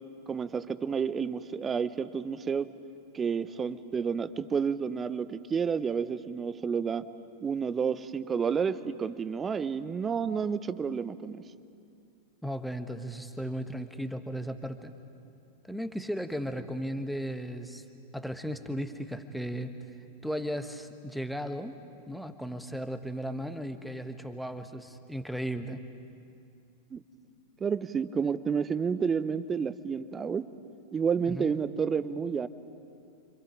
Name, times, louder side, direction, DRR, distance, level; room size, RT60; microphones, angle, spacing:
voice 1, 0.3-2.7 3.1-7.0 7.4-11.4 26.9-27.0 27.6-30.5 30.9-32.5, right 6 dB, 20° right, 15 dB, 0.8 m, -30 dB
voice 2, 12.4-14.9 15.7-17.8 18.1-19.7 20.2-21.7 22.1-25.9 31.2-31.5, equal, ahead, 8 dB, 1.3 m, -36 dB
29.5 x 26.0 x 5.2 m, 2.5 s
figure-of-eight pair, 90°, 0 cm